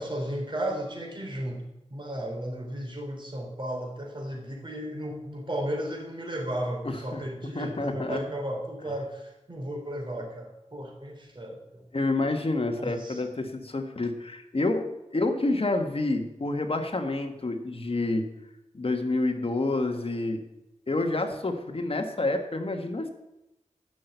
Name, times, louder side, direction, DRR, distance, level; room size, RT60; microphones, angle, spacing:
voice 1, 0.0-1.6 1.9-11.8 12.8-13.2, right 1 dB, 40° right, 0 dB, 3.5 m, -34 dB
voice 2, 6.8-7.2 7.5-8.2 11.9-14.9 15.1-18.3 18.7-20.4 20.9-23.1, left 2 dB, 50° left, 5 dB, 1.5 m, -28 dB
11.5 x 6.1 x 8.1 m, 0.91 s
wide cardioid pair, 70°, 13 cm